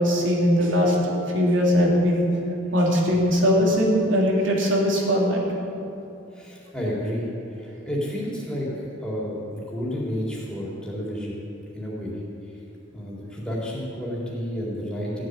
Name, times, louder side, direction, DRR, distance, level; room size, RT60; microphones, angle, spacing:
voice 1, 0.0-2.3 2.7-5.4, equal, 75° right, -2 dB, 3.0 m, -20 dB
voice 2, 6.3-7.3 7.6-8.7 9.0-11.3 11.7-12.2 12.9-15.3, equal, 5° left, -6 dB, 3.8 m, -30 dB
15.0 x 7.6 x 9.6 m, 2.9 s
head